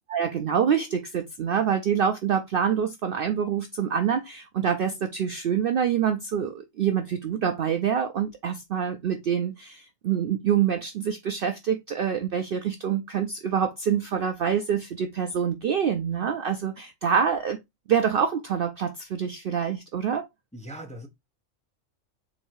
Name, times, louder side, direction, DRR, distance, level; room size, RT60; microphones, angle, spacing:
voice 1, 0.1-17.6 17.9-20.3, right 8 dB, 60° right, 0.6 m, -26 dB
voice 2, 20.5-21.1, right 1 dB, 5° left, 0.6 m, -39 dB
4.0 x 2.6 x 4.5 m
omnidirectional pair, 1.3 m